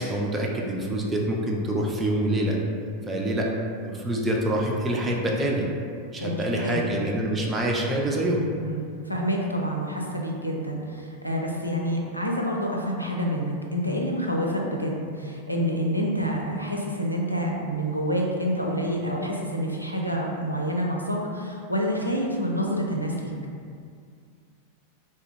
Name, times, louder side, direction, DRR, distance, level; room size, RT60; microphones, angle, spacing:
voice 1, 0.0-2.6 3.1-3.5 3.8-5.7 6.1-8.4, right 1 dB, 15° right, -2 dB, 0.4 m, -26 dB
voice 2, 6.2-6.8 8.6-23.3, equal, 90° right, -1 dB, 0.4 m, -28 dB
2.7 x 2.2 x 3.5 m, 2.3 s
figure-of-eight pair, 90°, 0 cm